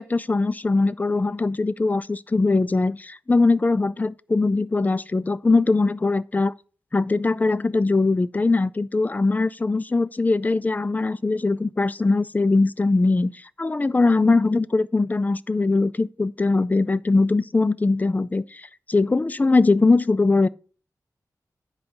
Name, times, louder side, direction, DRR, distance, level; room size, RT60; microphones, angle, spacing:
voice 1, 0.0-6.5 6.9-13.3 13.6-20.5, left 3 dB, 25° left, 0.3 m, -21 dB
10.0 x 4.0 x 5.4 m
wide cardioid pair, 100°, 7 cm